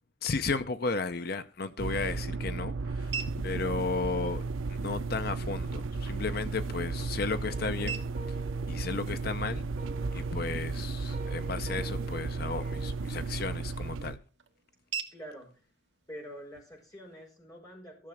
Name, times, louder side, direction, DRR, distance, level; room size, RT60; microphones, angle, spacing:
voice 1, 0.2-3.1 3.4-4.4 4.8-8.0 8.7-9.6 10.1-14.2, left 4 dB, 50° left, 0.6 m, -34 dB
sound 1, 1.4-17.4, right 7 dB, 60° right, 1.6 m, -47 dB
sound 2, 1.8-14.2, right 3 dB, 80° right, 0.6 m, -34 dB
sound 3, 6.4-12.9, right 3 dB, 35° right, 2.9 m, -48 dB
voice 2, 15.1-15.5 16.1-18.1, equal, 15° left, 5.2 m, -46 dB
14.0 x 6.8 x 6.2 m
head